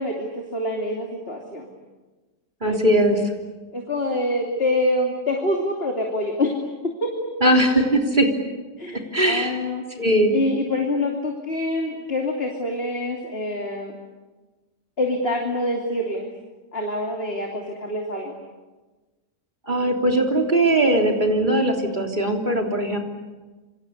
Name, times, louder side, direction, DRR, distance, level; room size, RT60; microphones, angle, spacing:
voice 1, 0.0-1.7 2.6-3.3 3.7-6.6 7.0-7.1 8.8-10.0 10.3-14.0 15.0-16.3 16.7-18.4, left 1 dB, 40° left, 1 dB, 3.2 m, -26 dB
voice 2, 2.6-3.2 7.4-8.3 9.1-9.6 10.0-10.3 19.7-23.0, right 1 dB, 30° right, 2 dB, 3.6 m, -19 dB
28.0 x 25.5 x 8.3 m, 1.2 s
omnidirectional pair, 1.7 m